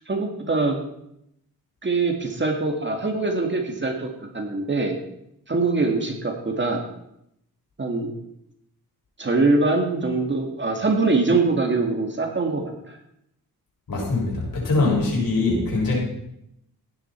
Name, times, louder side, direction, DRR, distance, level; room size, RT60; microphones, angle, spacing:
voice 1, 0.1-0.8 1.8-4.1 4.3-5.0 5.5-6.8 7.8-8.1 9.2-13.0, right 3 dB, 30° right, 2 dB, 2.1 m, -23 dB
voice 2, 13.9-15.9, left 3 dB, 65° left, -3 dB, 6.7 m, -22 dB
16.0 x 11.5 x 4.5 m, 0.78 s
wide cardioid pair, 125°, 37 cm